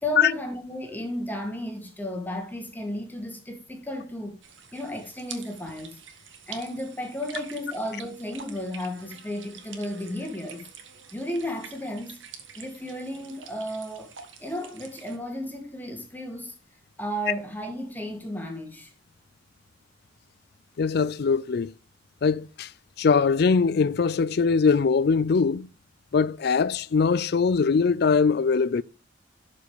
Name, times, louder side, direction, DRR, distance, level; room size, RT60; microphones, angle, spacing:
voice 1, 0.0-4.4 4.7-6.0 6.5-10.7 11.1-12.2 12.6-14.1 14.4-16.6 17.0-18.9, equal, 10° left, 2.1 m, -33 dB
sound 1, 4.4-15.2, right 7 dB, 80° right, 1.8 m, -46 dB
voice 2, 20.8-21.7 22.2-22.7 23.0-25.7 26.1-28.8, left 5 dB, 55° left, 0.4 m, -22 dB
12.0 x 5.4 x 4.9 m
head